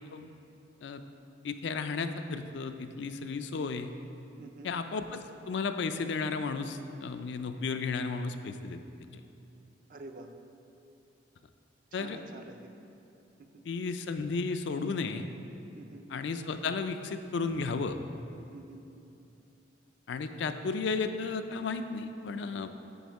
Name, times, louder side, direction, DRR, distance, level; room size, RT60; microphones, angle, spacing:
voice 1, 1.4-3.9 4.6-8.8 11.9-12.2 13.6-15.3 16.1-18.0 20.1-22.9, left 4 dB, 70° left, 8 dB, 0.4 m, -33 dB
voice 2, 4.4-4.7 9.9-10.3 11.9-12.7 13.4-13.6 15.8-16.1 18.5-18.9, right 2 dB, 45° right, 6 dB, 0.5 m, -48 dB
9.4 x 4.2 x 4.7 m, 2.8 s
head